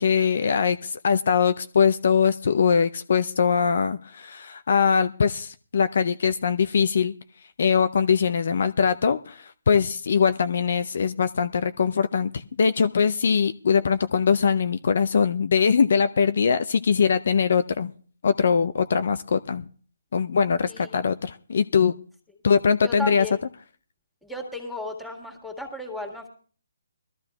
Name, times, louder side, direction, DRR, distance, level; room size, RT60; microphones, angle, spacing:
voice 1, 0.0-7.1 7.6-17.9 18.2-19.7 20.1-21.9 22.4-23.2, left 6 dB, 55° left, 10 dB, 0.5 m, -22 dB
voice 2, 20.7-21.0 22.8-23.4 24.2-26.3, left 1 dB, ahead, 2 dB, 1.9 m, -34 dB
22.5 x 13.0 x 2.3 m, 0.43 s
figure-of-eight pair, 145°, 0 cm